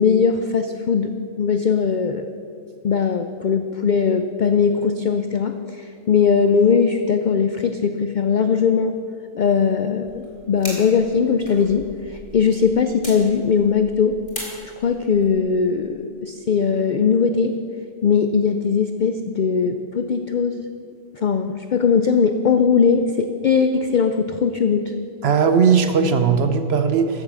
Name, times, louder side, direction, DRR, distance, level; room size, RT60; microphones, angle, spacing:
voice 1, 0.0-2.3 2.8-9.0 9.3-14.2 14.8-17.6 18.0-20.6 21.2-24.9, left 6 dB, 70° left, 8 dB, 0.4 m, -20 dB
sound 1, 10.0-15.4, left 1 dB, 40° left, 3.7 m, -39 dB
voice 2, 25.2-27.2, right 6 dB, 55° right, 8 dB, 0.9 m, -18 dB
14.0 x 7.4 x 6.1 m, 2.5 s
omnidirectional pair, 1.4 m